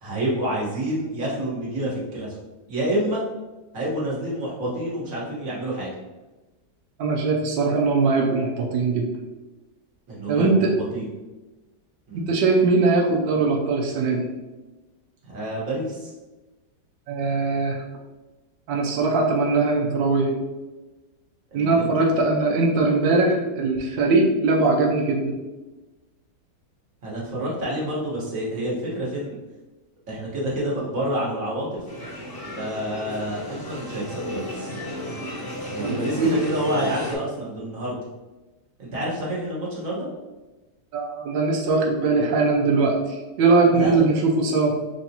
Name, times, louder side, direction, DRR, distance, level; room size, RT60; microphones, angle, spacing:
voice 1, 0.0-2.3 2.7-3.2 3.7-5.9 10.1-10.7 10.9-11.0 12.1-12.3 15.2-16.1 21.5-22.1 27.0-29.4 30.1-31.8 32.6-34.7 35.7-38.0 38.8-40.1 43.7-44.1, right 1 dB, 50° right, -6 dB, 1.6 m, -28 dB
voice 2, 7.0-9.1 10.3-10.7 12.1-14.2 17.1-17.8 18.7-20.4 21.5-25.3 35.8-36.4 40.9-43.0 43.4-44.8, right 3 dB, 90° right, 0 dB, 1.3 m, -21 dB
sound 1, 31.9-37.2, left 1 dB, 30° left, 0.3 m, -33 dB
4.0 x 3.3 x 2.8 m, 1.1 s
omnidirectional pair, 1.9 m